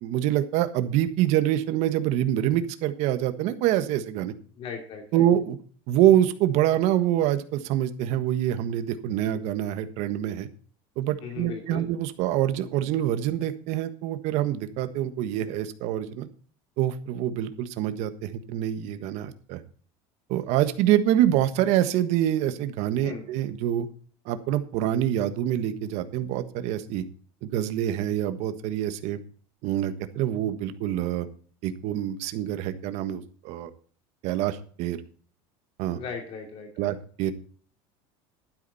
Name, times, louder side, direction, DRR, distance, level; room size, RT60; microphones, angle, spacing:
voice 1, 0.0-4.3 5.1-5.6 5.9-10.5 11.0-16.3 16.8-19.6 20.3-23.9 24.2-27.0 27.4-29.2 29.6-31.3 31.6-33.7 34.2-35.0 35.8-36.0 36.8-37.3, right 12 dB, 55° right, 11 dB, 1.4 m, -25 dB
voice 2, 4.6-5.3 11.2-11.8 23.0-23.3 35.9-36.9, left 6 dB, 45° left, 3 dB, 2.7 m, -38 dB
12.0 x 10.0 x 4.2 m, 0.43 s
cardioid pair, 155°, 13 cm